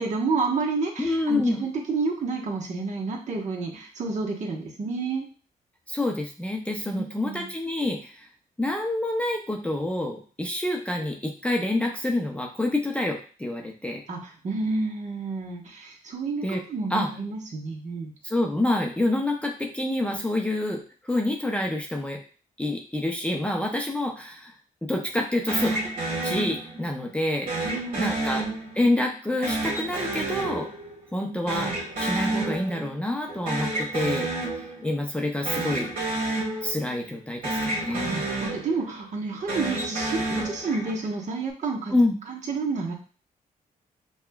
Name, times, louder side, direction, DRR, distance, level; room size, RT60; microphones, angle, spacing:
voice 1, 0.0-5.2 6.8-7.5 14.1-18.1 27.6-28.1 37.9-41.9 42.3-42.9, right 3 dB, 50° right, -1 dB, 1.1 m, -30 dB
voice 2, 1.0-1.6 5.9-8.3 8.6-14.0 16.4-16.6 16.9-17.1 18.2-22.2 22.6-24.5 24.8-25.7 26.2-27.7 27.9-28.4 28.7-30.7 31.1-31.7 32.0-34.3 34.5-35.9 36.6-38.2 41.9-42.1, left 1 dB, 10° left, 1 dB, 0.6 m, -27 dB
sound 1, 25.5-27.0 27.5-29.0 29.4-31.2 31.5-33.0 33.3-35.0 35.4-37.2 37.4-39.0 39.4-41.2, right 2 dB, 65° right, 1.5 m, -30 dB
5.8 x 2.3 x 2.2 m, 0.38 s
cardioid pair, 90°, 16 cm